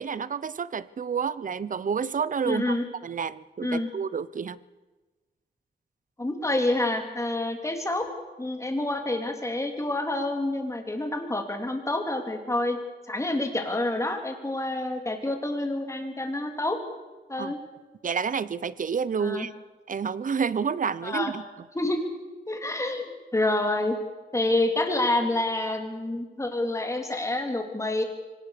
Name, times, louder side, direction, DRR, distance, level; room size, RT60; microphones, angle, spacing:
voice 1, 0.0-2.8 3.0-4.6 17.4-17.5 18.0-19.5 19.9-21.4, right 6 dB, 50° right, 19 dB, 0.8 m, -29 dB
voice 2, 2.4-2.9 3.6-3.9 6.2-8.1 8.4-12.8 13.1-16.8 17.3-17.6 19.2-19.5 21.0-21.3 21.7-22.0 22.5-24.0 24.3-28.0, left 2 dB, 15° left, 4 dB, 3.5 m, -28 dB
24.5 x 18.5 x 6.8 m, 1.2 s
wide cardioid pair, 110°, 18 cm